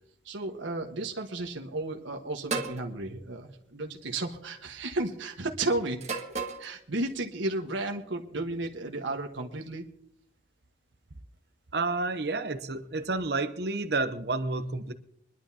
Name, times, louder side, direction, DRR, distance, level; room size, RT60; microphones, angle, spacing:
voice 1, 0.2-6.0 6.6-9.8, right 2 dB, 80° right, 2 dB, 1.4 m, -33 dB
sound 1, 2.5-2.8 4.0-4.4 6.0-6.7, right 4 dB, 35° right, 1.5 m, -33 dB
voice 2, 11.7-14.9, right 3 dB, 55° right, 10 dB, 0.9 m, -30 dB
23.5 x 11.5 x 2.9 m, 0.69 s
head